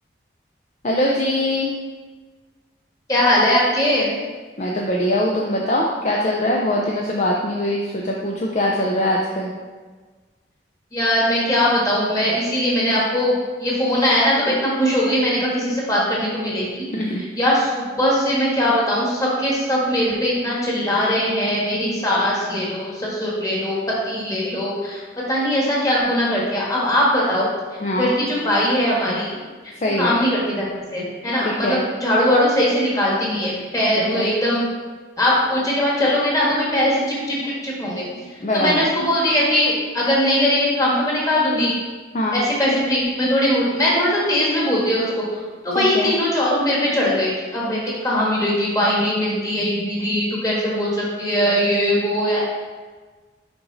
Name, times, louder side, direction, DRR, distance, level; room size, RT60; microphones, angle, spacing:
voice 1, 0.8-1.7 4.6-9.5 16.9-17.2 27.8-28.1 29.8-30.2 31.4-31.8 34.0-34.3 38.2-38.9 42.1-42.4 45.7-46.1, left 1 dB, 35° left, -2 dB, 0.5 m, -22 dB
voice 2, 3.1-4.1 10.9-16.8 17.4-27.5 28.0-29.3 30.0-34.6 35.2-38.0 38.5-41.7 42.3-45.0 45.6-52.4, left 1 dB, 20° left, -5 dB, 1.5 m, -20 dB
6.0 x 5.0 x 4.0 m, 1.4 s
head